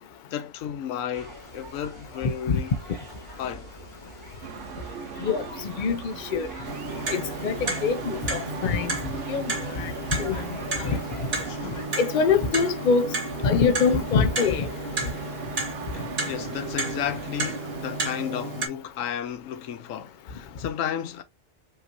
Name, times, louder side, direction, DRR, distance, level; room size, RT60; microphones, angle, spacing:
voice 1, 0.3-2.8 3.4-3.7 11.3-11.9 15.2-15.3 15.9-21.2, left 9 dB, 80° left, 1.1 m, -33 dB
sound 1, 1.1-11.9, equal, 20° right, 2.4 m, -43 dB
sound 2, 4.4-18.1, right 7 dB, 70° right, 0.9 m, -40 dB
voice 2, 5.2-6.5 7.1-8.9 9.3-10.4 10.8-11.0 12.0-13.1 13.4-14.7, left 5 dB, 50° left, 0.6 m, -24 dB
Clock, 6.6-18.7, right 2 dB, 50° right, 1.5 m, -32 dB
5.3 x 3.0 x 2.6 m
omnidirectional pair, 1.4 m